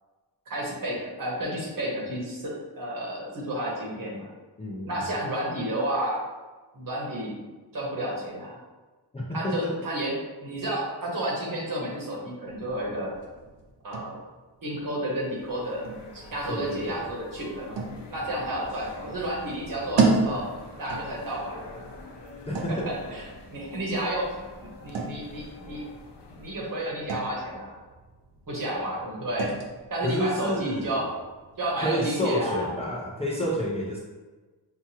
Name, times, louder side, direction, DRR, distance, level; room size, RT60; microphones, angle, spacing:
voice 1, 0.5-4.3 4.9-6.2 6.7-7.3 7.7-8.6 9.3-10.1 10.4-13.1 13.8-14.2 14.6-15.8 16.1-17.8 18.1-20.5 20.8-21.8 22.7-25.8 26.3-27.7 28.5-29.5 29.9-31.1 31.6-32.7, right 1 dB, 50° right, -4 dB, 1.2 m, -31 dB
voice 2, 4.6-5.1 9.1-9.7 16.5-17.0 22.5-22.9 30.0-31.1 31.8-34.0, equal, 15° left, -5 dB, 0.5 m, -29 dB
sound 1, 12.5-32.0, right 3 dB, 80° right, 0.8 m, -35 dB
sound 2, 15.3-26.9, left 2 dB, 70° left, 0.7 m, -46 dB
5.8 x 2.3 x 2.9 m, 1.3 s
wide cardioid pair, 170°, 43 cm